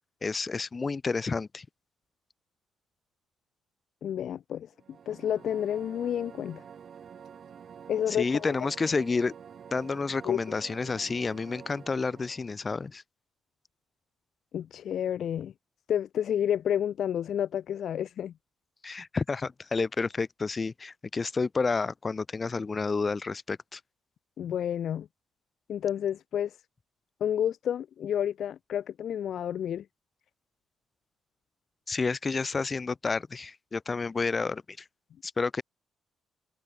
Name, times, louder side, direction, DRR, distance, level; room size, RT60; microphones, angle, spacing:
voice 1, 0.2-1.6 8.1-9.3 9.7-13.0 18.8-23.8 31.9-34.8 35.2-35.6, left 4 dB, 30° left, 1.1 m, -30 dB
voice 2, 4.0-4.7 5.1-6.6 7.9-8.5 10.2-10.4 14.5-15.5 15.9-18.3 24.4-25.1 25.7-26.6 27.2-29.8, left 9 dB, 65° left, 0.6 m, -30 dB
sound 1, 4.7-12.6, right 7 dB, 55° right, 4.9 m, -48 dB
cardioid pair, 90°, 0 cm